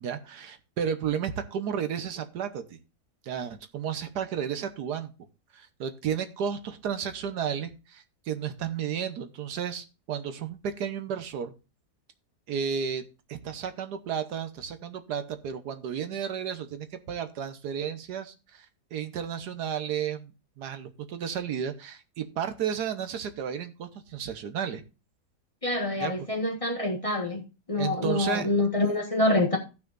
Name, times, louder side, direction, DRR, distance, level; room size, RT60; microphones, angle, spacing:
voice 1, 0.0-2.8 3.2-5.1 5.5-11.5 12.5-18.7 18.9-24.8 26.0-26.1 27.8-28.5, right 8 dB, 80° right, 1.5 m, -33 dB
voice 2, 25.6-27.4 27.7-29.6, left 2 dB, 20° left, 1.4 m, -26 dB
17.0 x 6.0 x 2.5 m
omnidirectional pair, 1.7 m